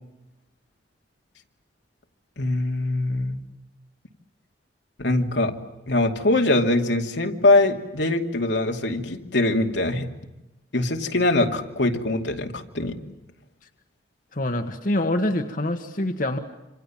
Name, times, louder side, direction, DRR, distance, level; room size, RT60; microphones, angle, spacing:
voice 1, 2.4-3.4 5.0-5.5 5.9-10.1 10.7-13.0, left 2 dB, 85° left, 3 dB, 2.6 m, -22 dB
voice 2, 14.3-16.4, left 1 dB, 50° left, 6 dB, 1.5 m, -25 dB
27.5 x 27.0 x 7.4 m, 0.96 s
head